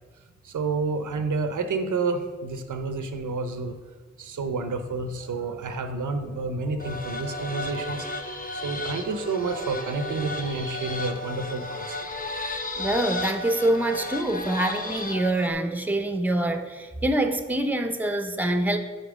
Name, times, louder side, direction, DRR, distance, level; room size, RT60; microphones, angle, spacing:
voice 1, 0.4-3.7 4.2-8.1 8.5-12.0, right 3 dB, 85° right, 7 dB, 0.6 m, -29 dB
sound 1, 6.8-15.5, left 1 dB, 30° left, 1.0 m, -33 dB
voice 2, 12.8-18.8, right 1 dB, 5° right, 6 dB, 0.7 m, -25 dB
5.2 x 4.4 x 6.0 m, 1.4 s
cardioid pair, 40°, 30 cm